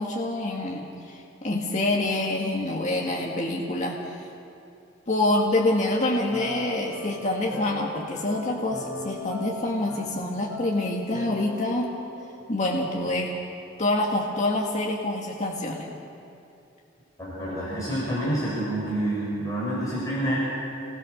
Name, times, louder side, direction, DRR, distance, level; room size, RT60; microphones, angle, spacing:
voice 1, 0.0-4.2 5.1-11.9 12.5-13.4 13.8-15.9, left 2 dB, 40° left, -2 dB, 2.0 m, -26 dB
sound 1, 6.3-12.7, equal, 20° right, 6.4 m, -40 dB
voice 2, 17.2-20.4, right 1 dB, 20° left, -8 dB, 6.0 m, -28 dB
28.0 x 21.0 x 6.7 m, 2.6 s
head